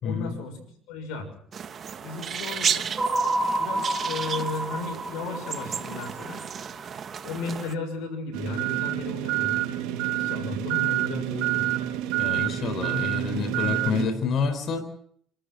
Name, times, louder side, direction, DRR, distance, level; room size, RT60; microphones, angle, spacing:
voice 1, 0.0-1.3 2.0-2.9 3.6-6.4 7.2-9.6 10.1-11.6, left 4 dB, 80° left, 4 dB, 6.5 m, -35 dB
sound 1, 1.5-7.7, right 7 dB, 40° right, 1.3 m, -33 dB
sound 2, 3.0-7.2, right 2 dB, 20° right, 3.6 m, -29 dB
sound 3, 8.3-14.1, right 13 dB, 85° right, 2.6 m, -27 dB
voice 2, 12.2-14.8, left 5 dB, 50° left, 7 dB, 4.2 m, -28 dB
27.0 x 13.5 x 7.9 m, 0.63 s
cardioid pair, 115°, 0 cm